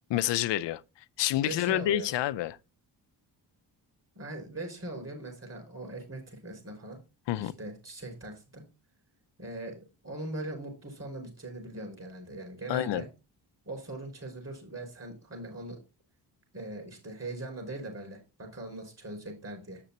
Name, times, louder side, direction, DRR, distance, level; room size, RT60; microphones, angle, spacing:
voice 1, 0.1-0.8 1.2-2.6 7.3-7.5 12.7-13.0, left 13 dB, 85° left, 0.5 m, -28 dB
voice 2, 1.4-2.1 4.1-7.0 7.4-8.6 9.4-13.1 13.6-15.8 16.5-19.8, right 2 dB, 35° right, 5.1 m, -40 dB
7.9 x 6.7 x 4.1 m
cardioid pair, 90°, 42 cm